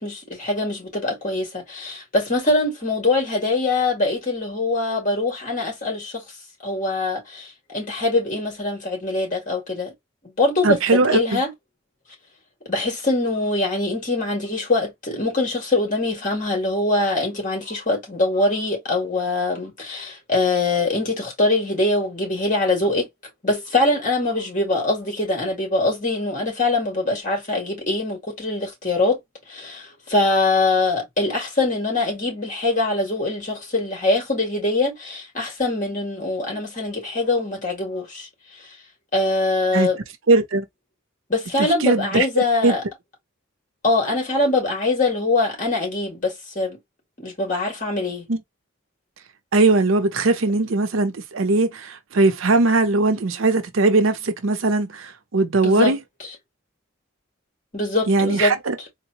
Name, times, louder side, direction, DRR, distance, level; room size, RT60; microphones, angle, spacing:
voice 1, 0.0-6.2 6.6-9.9 10.4-11.5 12.7-23.1 23.4-29.2 29.5-38.3 38.6-38.7 39.1-40.0 41.3-42.8 43.8-46.8 47.2-48.3 55.6-55.9 57.7-58.6, left 2 dB, 40° left, 1.8 m, -23 dB
voice 2, 10.6-11.4 39.7-39.9 40.3-40.7 41.6-42.2 42.6-42.7 48.3-48.4 49.5-56.0 58.1-58.8, right 3 dB, 85° right, 0.7 m, -19 dB
3.9 x 2.1 x 2.9 m
head